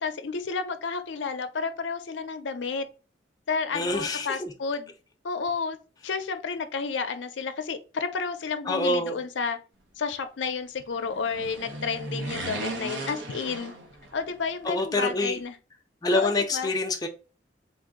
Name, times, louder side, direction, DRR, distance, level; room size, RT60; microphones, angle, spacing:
voice 1, 0.0-2.8 3.5-4.9 5.2-5.8 6.0-9.6 10.0-13.7 14.1-15.6 16.1-16.7, left 5 dB, 85° left, 0.5 m, -31 dB
voice 2, 3.7-4.5 8.7-9.2 14.7-15.4 16.0-17.1, left 2 dB, 20° left, 0.4 m, -26 dB
sound 1, 11.0-14.4 14.6-14.7, right 2 dB, 90° right, 0.9 m, -36 dB
3.5 x 2.6 x 3.7 m
head